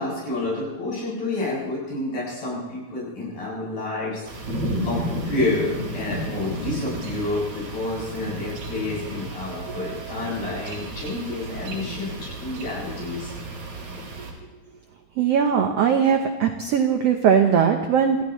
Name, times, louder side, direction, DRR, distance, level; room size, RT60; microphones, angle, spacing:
voice 1, 0.0-4.3 4.8-13.3, left 2 dB, 80° left, -6 dB, 9.7 m, -29 dB
sound 1, 4.3-14.3, right 1 dB, 50° right, 4.3 m, -32 dB
voice 2, 15.2-18.2, right 7 dB, 75° right, 4 dB, 1.4 m, -20 dB
28.0 x 15.0 x 3.2 m, 1.1 s
omnidirectional pair, 4.1 m